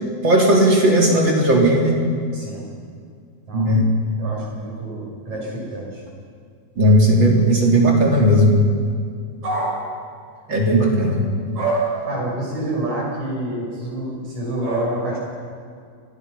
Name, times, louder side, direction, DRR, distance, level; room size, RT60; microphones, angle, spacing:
voice 1, 0.2-1.9 3.5-3.9 6.8-8.6 10.5-11.2, equal, 40° right, -1 dB, 4.0 m, -16 dB
voice 2, 2.3-2.7 3.5-3.9 4.2-6.0 9.4-9.8 11.4-15.2, right 2 dB, 75° right, -3 dB, 8.0 m, -27 dB
29.0 x 21.0 x 5.6 m, 2.2 s
omnidirectional pair, 3.3 m